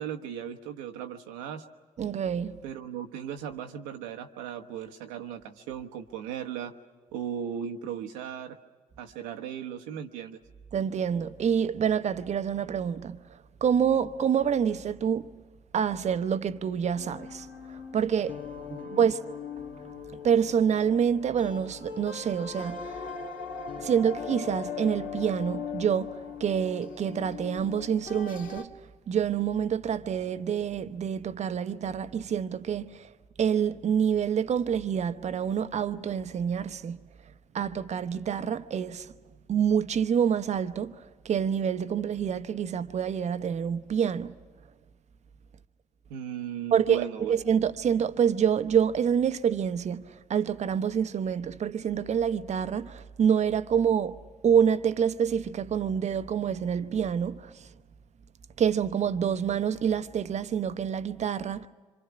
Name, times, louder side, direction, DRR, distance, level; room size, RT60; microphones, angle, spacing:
voice 1, 0.0-1.6 2.6-6.7 7.1-8.6 9.0-10.4 18.7-19.0 46.1-47.3, right 9 dB, 70° right, 1.2 m, -37 dB
voice 2, 2.0-2.6 10.7-13.2 13.6-15.3 15.7-18.4 19.0-19.2 20.1-23.1 23.8-28.7 29.1-33.1 33.4-37.0 37.5-39.1 39.5-44.3 46.7-54.2 54.4-57.7 58.6-61.7, right 8 dB, 45° right, 1.0 m, -27 dB
sound 1, 16.9-28.6, left 6 dB, 55° left, 2.1 m, -40 dB
26.5 x 26.5 x 6.0 m
figure-of-eight pair, 45°, 16 cm